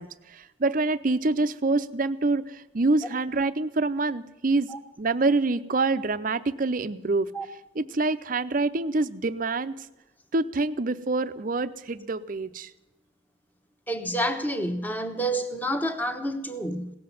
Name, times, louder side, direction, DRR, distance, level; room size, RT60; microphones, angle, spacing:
voice 1, 0.0-4.7 5.0-7.3 7.8-9.7 10.3-12.7, right 3 dB, 45° right, 0.6 m, -26 dB
voice 2, 13.9-16.9, right 1 dB, 10° left, 1.1 m, -29 dB
17.5 x 7.7 x 9.4 m
head